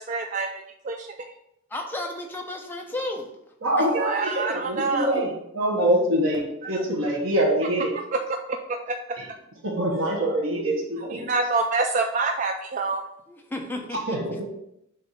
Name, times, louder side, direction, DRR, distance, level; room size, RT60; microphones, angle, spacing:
voice 1, 0.0-1.3 3.9-5.1 6.6-6.8 8.7-8.9 11.1-13.1, right 3 dB, 35° right, 4 dB, 0.3 m, -27 dB
voice 2, 1.7-3.3 3.8-3.9 13.3-14.0, left 2 dB, 10° left, 1 dB, 0.7 m, -32 dB
voice 3, 3.6-7.9 9.2-9.3 9.6-11.2 13.9-14.5, right 1 dB, 80° right, -2 dB, 1.2 m, -25 dB
6.8 x 2.7 x 5.3 m, 0.79 s
head